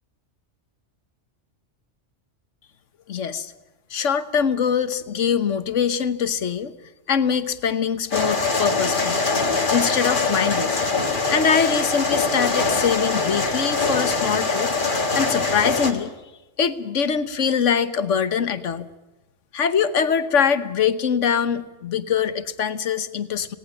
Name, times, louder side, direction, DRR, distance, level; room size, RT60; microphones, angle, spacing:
voice 1, 3.1-3.5 3.9-6.7 7.1-9.2 9.7-10.8 11.3-14.7 15.1-16.1 16.6-18.9 19.5-23.5, left 7 dB, 80° left, 13 dB, 1.5 m, -23 dB
sound 1, 8.1-15.9, left 3 dB, 45° left, 2.0 m, -23 dB
18.5 x 18.0 x 9.0 m, 1.1 s
omnidirectional pair, 1.2 m